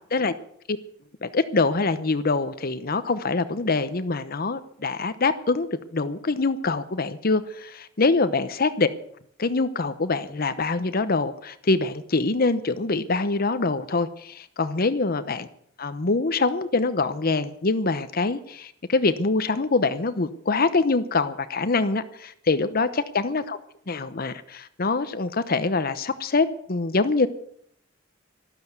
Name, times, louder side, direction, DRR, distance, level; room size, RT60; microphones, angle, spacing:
voice 1, 1.2-5.7 5.9-8.9 9.4-15.5 15.8-23.6 23.9-27.3, left 3 dB, 50° left, 0.9 m, -24 dB
13.0 x 13.0 x 8.1 m
head